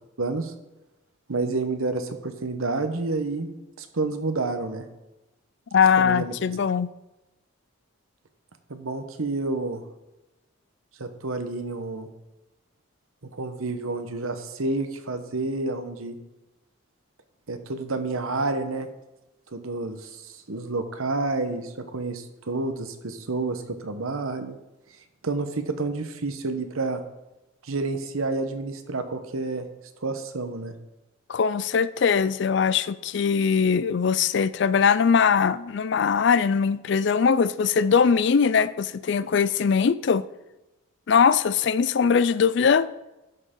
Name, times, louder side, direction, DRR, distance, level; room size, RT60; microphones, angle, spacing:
voice 1, 0.2-0.5 1.3-3.5 3.8-4.9 6.0-6.3 8.7-9.8 11.0-12.1 13.3-16.2 17.5-18.9 19.5-24.6 25.2-27.0 27.6-29.7 30.0-30.7, right 3 dB, 80° right, 1.0 m, -29 dB
voice 2, 5.7-6.9 31.3-40.2 41.1-42.9, left 6 dB, 55° left, 0.3 m, -21 dB
12.0 x 6.6 x 3.8 m
head